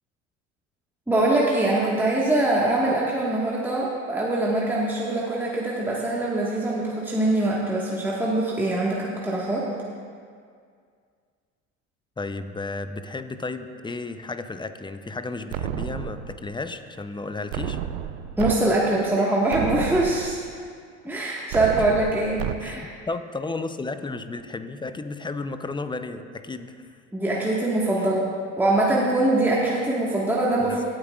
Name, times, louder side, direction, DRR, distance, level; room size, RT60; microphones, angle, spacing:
voice 1, 1.1-9.7 18.4-20.4 21.0-22.9 27.1-30.8, right 2 dB, 5° right, -5 dB, 1.5 m, -23 dB
voice 2, 12.2-17.8 21.7-21.8 22.6-27.0 30.6-30.8, left 3 dB, 15° left, 10 dB, 0.6 m, -33 dB
sound 1, 15.5-16.5 17.5-18.5 19.0-19.1 19.5-20.5 21.5-22.5, right 10 dB, 75° right, 0.6 m, -31 dB
17.0 x 8.9 x 2.4 m, 2.1 s
hypercardioid pair, 65°, 36 cm